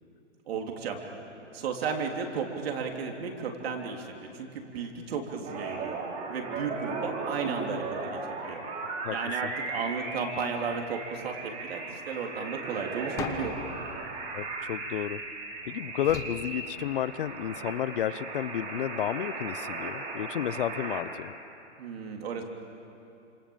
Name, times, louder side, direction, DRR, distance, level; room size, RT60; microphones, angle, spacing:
voice 1, 0.5-1.0 1.5-6.0 6.3-8.6 9.1-13.6 21.8-22.4, right 5 dB, 55° right, 2 dB, 3.7 m, -34 dB
sound 1, 5.4-21.0, right 3 dB, 20° right, 3.3 m, -37 dB
sound 2, 13.2-15.4 16.0-17.4, left 7 dB, 10° left, 0.6 m, -41 dB
voice 2, 14.3-15.2 15.7-21.3, left 10 dB, 45° left, 18 dB, 0.8 m, -32 dB
29.0 x 27.5 x 7.4 m, 2.7 s
hypercardioid pair, 160°, 37 cm